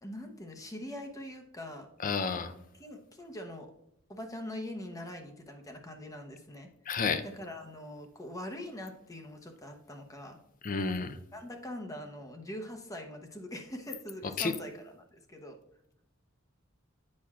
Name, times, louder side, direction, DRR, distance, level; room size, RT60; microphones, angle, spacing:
voice 1, 0.0-1.9 2.6-3.7 4.1-10.4 11.3-15.6, left 1 dB, 15° left, 4 dB, 0.8 m, -43 dB
voice 2, 2.0-2.5 6.9-7.2 10.6-11.2 14.4-14.5, left 5 dB, 40° left, 11 dB, 0.5 m, -30 dB
8.5 x 5.9 x 2.4 m, 0.82 s
head